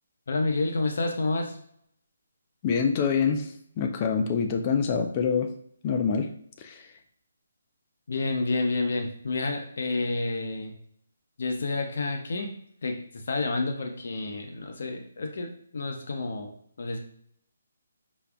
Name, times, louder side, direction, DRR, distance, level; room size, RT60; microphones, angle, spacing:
voice 1, 0.3-1.6 8.1-10.7 11.4-12.5 12.8-16.5 16.8-17.0, left 3 dB, 65° left, 4 dB, 0.7 m, -29 dB
voice 2, 2.6-5.5 5.8-6.3 6.6-6.9, left 6 dB, 25° left, 5 dB, 0.4 m, -26 dB
5.2 x 2.4 x 2.3 m, 0.67 s
hypercardioid pair, 160°, 0 cm